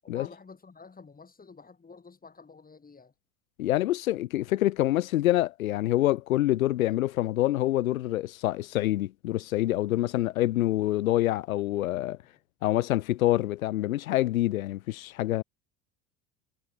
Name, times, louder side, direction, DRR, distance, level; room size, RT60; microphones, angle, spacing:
voice 1, 0.0-3.1, left 4 dB, 20° left, 7.2 m, -49 dB
voice 2, 3.6-12.2 12.6-15.4, left 15 dB, 85° left, 1.2 m, -26 dB
hypercardioid pair, 85°, 40 cm